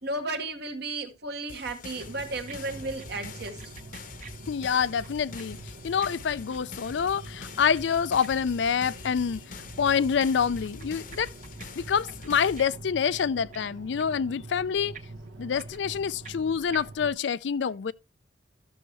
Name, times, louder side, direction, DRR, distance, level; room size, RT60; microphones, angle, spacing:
voice 1, 0.0-3.6, right 2 dB, 65° right, 1.7 m, -34 dB
sound 1, 1.5-12.6, left 5 dB, 50° left, 0.8 m, -45 dB
sound 2, 1.9-17.1, right 2 dB, 80° right, 1.4 m, -45 dB
sound 3, 2.0-2.5 2.8-5.4 5.7-9.1 9.4-10.2 10.5-11.7 11.9-13.7 14.0-14.2 14.5-14.6 14.9-16.4 16.7-16.8, right 7 dB, 45° right, 1.3 m, -48 dB
voice 2, 4.5-5.6 5.8-11.3 11.8-14.9 15.4-17.9, left 7 dB, 75° left, 0.4 m, -27 dB
14.0 x 6.6 x 3.0 m
head